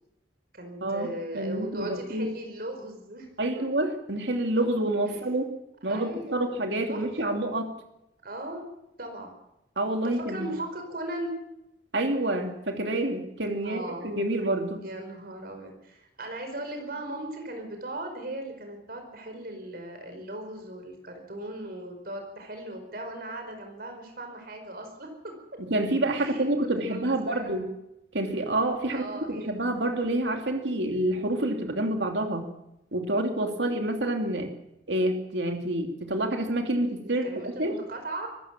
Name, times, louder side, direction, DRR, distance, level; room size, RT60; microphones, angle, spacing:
voice 1, 0.5-3.3 5.1-5.2 5.8-6.5 6.9-7.4 8.2-9.3 10.0-11.4 13.6-14.1 14.8-25.3 26.1-27.7 28.9-29.6 37.0-38.3, right 1 dB, 55° right, 4 dB, 4.8 m, -38 dB
voice 2, 1.3-2.3 3.4-5.5 5.8-7.7 9.8-10.5 11.9-14.8 25.7-27.7 28.1-32.5 32.9-34.5 34.9-37.8, right 1 dB, 85° right, 4 dB, 2.9 m, -28 dB
24.0 x 15.5 x 7.4 m, 0.87 s
head